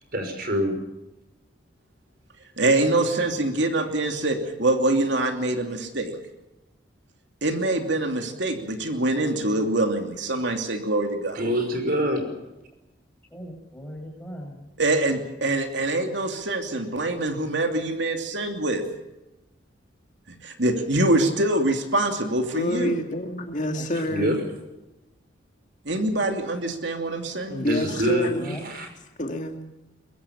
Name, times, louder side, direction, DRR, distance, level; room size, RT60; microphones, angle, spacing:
voice 1, 0.1-0.8 11.4-12.3 24.1-24.4 27.6-28.9, equal, 50° right, 6 dB, 5.6 m, -25 dB
voice 2, 2.6-6.1 7.4-11.4 14.8-18.8 20.3-22.9 25.8-27.7, right 2 dB, 65° right, 4 dB, 2.9 m, -24 dB
voice 3, 13.3-14.7 23.7-24.4 28.2-28.6, equal, 10° left, 2 dB, 6.7 m, -39 dB
voice 4, 22.5-24.4 27.5-28.6 29.2-29.6, equal, 40° left, 4 dB, 2.4 m, -27 dB
23.0 x 22.5 x 7.3 m, 0.98 s
head